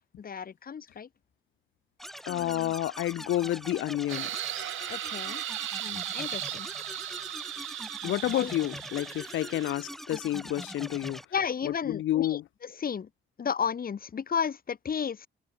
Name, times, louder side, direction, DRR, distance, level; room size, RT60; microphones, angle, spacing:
voice 1, 0.2-1.1 2.3-2.7 4.9-5.4 5.8-6.7 8.3-8.5 11.3-12.4 12.8-13.1 13.4-15.3, left 7 dB, 45° left, 5.0 m, -33 dB
sound 1, 2.0-11.3, equal, ahead, 6.9 m, -43 dB
voice 2, 2.2-4.3 8.0-11.2 11.6-12.4, left 13 dB, 80° left, 1.4 m, -30 dB
sound 2, 4.1-9.7, right 13 dB, 80° right, 5.2 m, -37 dB
cardioid pair, 90°, 20 cm